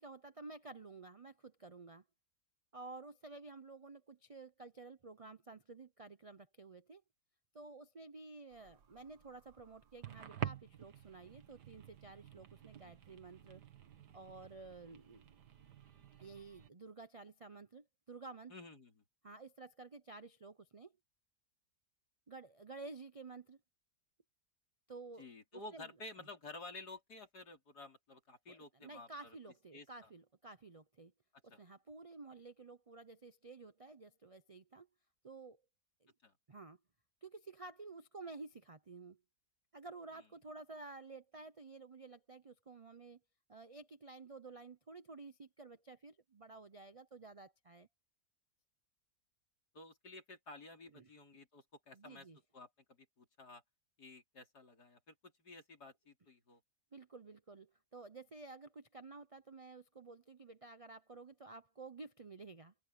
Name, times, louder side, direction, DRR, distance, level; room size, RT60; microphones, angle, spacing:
voice 1, 0.0-2.0 2.7-7.0 7.5-13.6 14.1-15.2 16.2-18.5 19.2-20.9 22.3-23.6 24.9-25.3 25.7-25.9 26.2-26.3 28.5-31.1 31.4-34.9 35.2-35.6 36.0-36.1 36.5-36.8 37.2-39.2 39.7-43.2 43.5-47.9 50.9-51.1 51.9-52.4 56.9-62.7, right 3 dB, 55° right, 0.3 m, -52 dB
sound 1, 8.5-16.7, right 10 dB, 85° right, 2.0 m, -49 dB
voice 2, 18.5-19.0 25.2-29.4 29.7-30.1 31.5-31.6 36.2-36.3 49.7-52.3 52.5-52.7 53.2-53.6 54.0-56.6, left 2 dB, 75° left, 4.5 m, -53 dB
omnidirectional pair, 1.7 m